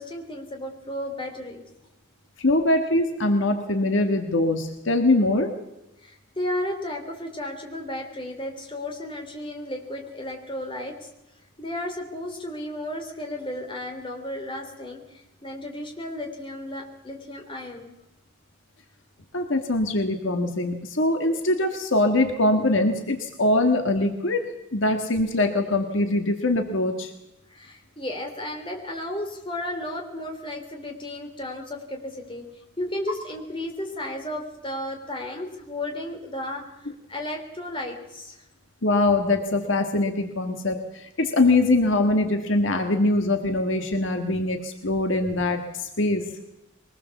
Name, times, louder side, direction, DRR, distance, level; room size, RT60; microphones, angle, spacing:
voice 1, 0.0-1.7 6.0-10.9 11.6-17.9 27.5-32.4 32.8-38.4, left 1 dB, 25° left, 2 dB, 3.4 m, -34 dB
voice 2, 2.4-5.5 19.3-24.4 24.7-27.1 38.8-46.3, left 2 dB, 60° left, 5 dB, 1.7 m, -23 dB
23.0 x 19.5 x 7.1 m, 0.93 s
head